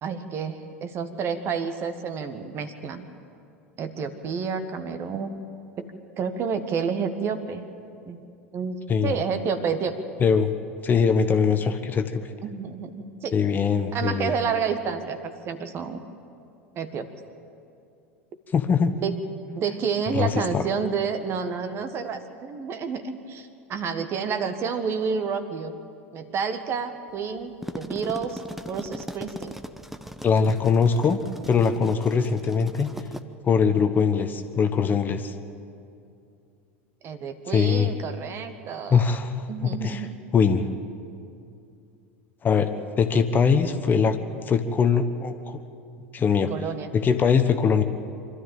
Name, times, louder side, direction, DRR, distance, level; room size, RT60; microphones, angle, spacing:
voice 1, 0.0-3.1 3.8-5.3 5.8-5.9 6.2-7.7 8.1-8.3 8.5-8.8 9.0-9.9 12.4-13.3 13.9-16.0 16.7-17.1 19.0-19.2 19.6-25.8 26.1-28.4 28.7-29.5 37.0-39.1 39.5-40.2 46.5-46.9, right 6 dB, 35° right, 9 dB, 1.6 m, -29 dB
voice 2, 10.2-10.5 10.8-12.2 13.3-14.3 18.5-18.9 20.1-20.6 30.2-31.2 31.5-32.9 33.4-35.3 37.5-37.9 38.9-40.1 40.3-40.7 42.4-44.2 44.5-45.6 46.1-46.5 46.9-47.8, left 6 dB, 25° left, 8 dB, 1.1 m, -22 dB
sound 1, 27.4-33.2, equal, 5° right, 0.9 m, -39 dB
25.0 x 13.0 x 9.0 m, 2.5 s
figure-of-eight pair, 80°, 7 cm